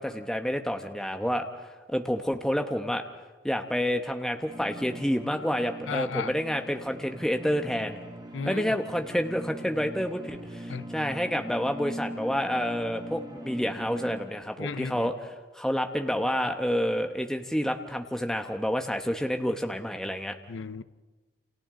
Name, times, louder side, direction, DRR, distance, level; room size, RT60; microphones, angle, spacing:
voice 1, 0.0-1.4 1.9-3.0 3.4-8.0 8.5-20.3, equal, 5° left, 5 dB, 1.0 m, -29 dB
sound 1, 4.5-14.2, right 1 dB, 20° right, 1.3 m, -41 dB
voice 2, 5.9-6.3 8.3-8.8 10.7-10.9 14.6-15.1 20.5-20.8, left 5 dB, 90° left, 14 dB, 0.7 m, -34 dB
28.5 x 28.0 x 3.8 m, 1.3 s
head